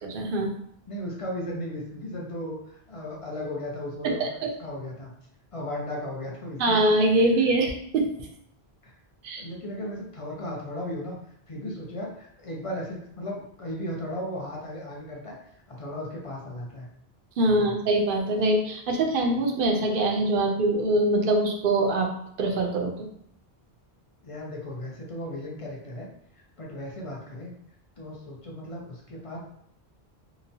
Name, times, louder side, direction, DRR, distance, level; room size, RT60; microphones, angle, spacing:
voice 1, 0.0-0.5 4.0-4.3 6.6-8.1 9.2-9.4 17.4-22.1 22.4-22.9, right 2 dB, 65° right, 1 dB, 0.7 m, -23 dB
voice 2, 0.9-4.3 4.6-5.1 5.5-6.9 8.8-8.9 9.4-11.2 11.5-16.9 17.5-17.7 24.2-26.1 26.3-27.5 28.0-29.4, left 1 dB, 40° left, -2 dB, 0.5 m, -36 dB
2.9 x 2.1 x 2.6 m, 0.70 s
omnidirectional pair, 1.0 m